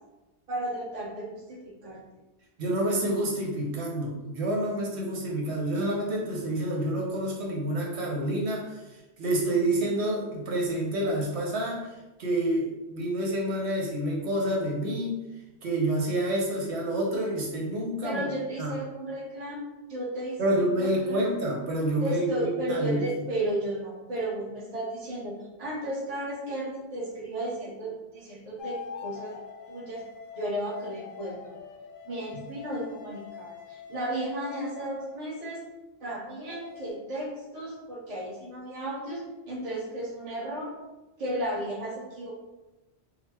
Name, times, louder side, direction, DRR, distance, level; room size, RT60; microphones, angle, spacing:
voice 1, 0.5-2.0 18.0-19.6 19.9-21.2 22.0-29.4 29.7-30.0 30.3-31.6 32.0-35.6 36.0-40.8 41.2-42.3, right 1 dB, 35° right, -3 dB, 0.9 m, -34 dB
voice 2, 2.6-11.9 12.2-15.2 15.6-18.2 18.6-18.8 20.4-23.0, right 1 dB, 80° right, -2 dB, 1.1 m, -28 dB
sound 1, 28.6-35.3 36.2-36.9, left 7 dB, 60° left, 0.7 m, -44 dB
4.1 x 2.1 x 4.2 m, 1.1 s
omnidirectional pair, 1.1 m